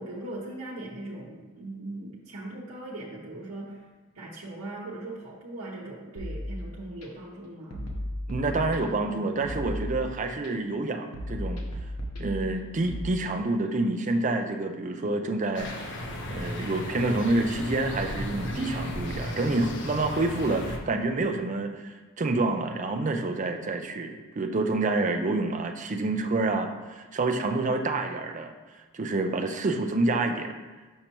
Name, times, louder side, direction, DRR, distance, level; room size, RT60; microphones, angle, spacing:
voice 1, 0.0-3.8 4.1-8.0, right 2 dB, 75° right, -7 dB, 0.9 m, -39 dB
sound 1, 6.2-7.1 7.7-9.1 9.4-10.5 11.1-13.0, left 1 dB, 90° left, 1.0 m, -35 dB
voice 2, 8.3-11.6 12.2-15.7 16.3-28.5 28.9-30.5, right 2 dB, 35° right, 5 dB, 0.4 m, -28 dB
sound 2, 15.5-20.8, left 1 dB, 55° left, 0.7 m, -35 dB
6.4 x 5.6 x 3.0 m, 1.3 s
head